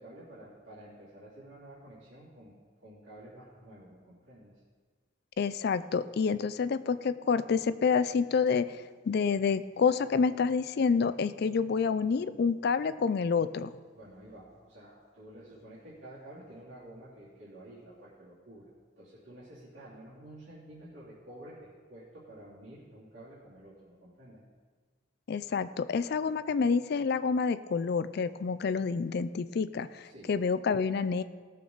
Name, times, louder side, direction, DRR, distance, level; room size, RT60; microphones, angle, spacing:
voice 1, 0.0-2.5 2.8-4.5 13.9-18.7 19.0-24.4 30.0-30.3, right 1 dB, 80° right, -10 dB, 3.0 m, -50 dB
voice 2, 5.4-8.8 9.1-13.7 25.3-31.2, left 5 dB, 55° left, 14 dB, 0.4 m, -28 dB
18.0 x 6.8 x 3.9 m, 1.5 s
head